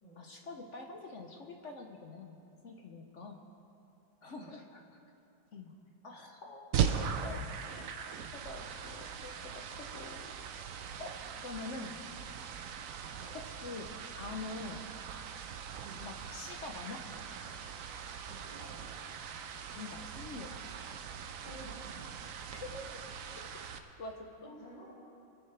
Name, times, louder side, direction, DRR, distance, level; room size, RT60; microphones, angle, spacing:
voice 1, 0.2-3.4 4.2-4.8 5.5-5.7 6.0-8.0 8.3-10.4 11.0-11.1 11.4-12.0 13.3-13.9 14.2-14.9 15.9-17.0 19.7-20.5 22.5-22.9 24.0-24.5, left 3 dB, 55° left, 3 dB, 0.8 m, -45 dB
sound 1, 6.7-23.8, right 7 dB, 65° right, 0.8 m, -40 dB
voice 2, 18.3-18.9 21.4-22.0 24.4-24.9, right 1 dB, 85° left, -13 dB, 4.2 m, -51 dB
25.0 x 10.5 x 3.3 m, 2.7 s
omnidirectional pair, 2.1 m